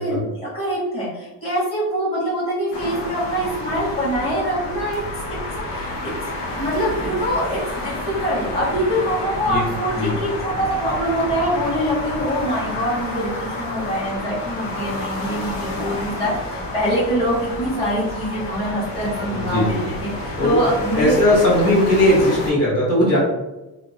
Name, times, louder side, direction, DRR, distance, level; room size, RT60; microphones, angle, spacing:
voice 1, 0.0-5.2 5.7-6.3 6.6-19.8 20.0-21.1, equal, 15° left, -8 dB, 1.1 m, -24 dB
sound 1, 2.7-22.5, left 1 dB, 70° left, 0.8 m, -30 dB
voice 2, 19.3-19.8 20.4-20.6 21.0-23.2, left 1 dB, 35° left, -7 dB, 1.2 m, -18 dB
2.7 x 2.1 x 2.7 m, 1.0 s
cardioid pair, 105°, 45 cm